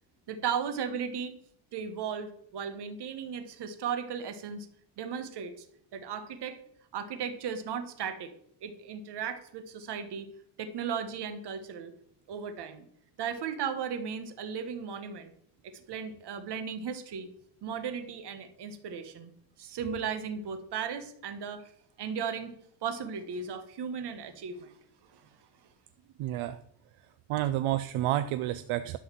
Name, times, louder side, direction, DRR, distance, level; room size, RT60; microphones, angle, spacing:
voice 1, 0.3-1.3 1.7-4.7 5.0-5.6 5.9-6.6 6.9-8.3 8.6-10.3 10.6-11.9 12.3-12.9 13.2-15.3 15.6-17.3 17.6-19.3 19.6-21.7 22.0-22.5 22.8-24.7 25.1-25.2, right 7 dB, 55° right, 9 dB, 1.3 m, -36 dB
voice 2, 26.2-26.6 27.3-29.0, right 13 dB, 75° right, 12 dB, 0.6 m, -30 dB
11.5 x 4.0 x 7.4 m, 0.69 s
cardioid pair, 175°, 50 cm